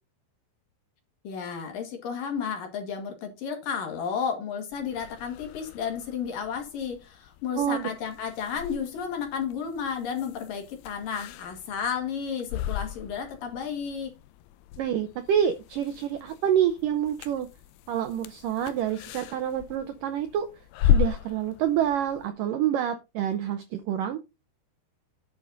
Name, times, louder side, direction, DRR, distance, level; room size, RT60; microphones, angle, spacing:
voice 1, 1.2-14.1, left 7 dB, 60° left, 3.3 m, -32 dB
sound 1, 4.7-22.3, left 11 dB, 80° left, 2.6 m, -35 dB
voice 2, 7.6-7.9 14.8-17.5 17.9-20.5 20.8-24.2, right 10 dB, 80° right, 2.0 m, -27 dB
11.0 x 6.4 x 4.0 m
omnidirectional pair, 4.9 m